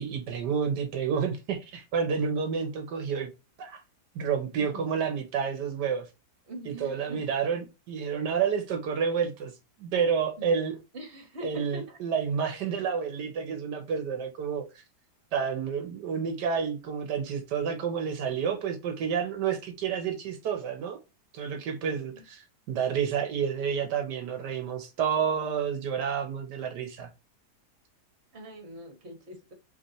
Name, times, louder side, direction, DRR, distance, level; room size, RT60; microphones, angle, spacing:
voice 1, 0.0-3.3 3.6-3.8 4.1-6.1 6.7-9.5 9.8-10.8 11.4-14.7 15.3-21.0 21.3-27.1, right 7 dB, 80° right, 1.4 m, -29 dB
voice 2, 6.5-7.2 10.4-10.6 10.9-12.0 12.4-12.5 22.1-22.2 28.3-29.5, equal, 40° right, 1.7 m, -43 dB
5.3 x 3.3 x 2.9 m
omnidirectional pair, 1.8 m